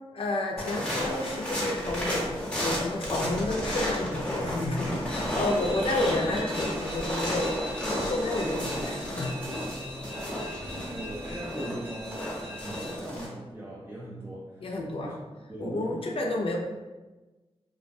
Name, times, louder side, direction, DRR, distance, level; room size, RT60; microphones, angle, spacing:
voice 1, 0.1-7.5 7.8-9.4 10.7-10.9 14.6-15.1 15.6-16.6, left 2 dB, 60° left, 1 dB, 0.4 m, -31 dB
sound 1, 0.6-13.3, left 1 dB, 10° left, 0.8 m, -33 dB
sound 2, 1.8-11.4, equal, 50° right, 0.9 m, -43 dB
sound 3, 5.0-13.0, equal, 75° right, 0.8 m, -42 dB
voice 2, 10.8-14.7 15.0-15.1 15.5-16.2, right 1 dB, 20° right, -6 dB, 0.4 m, -40 dB
2.3 x 2.1 x 2.5 m, 1.2 s
wide cardioid pair, 75°, 11 cm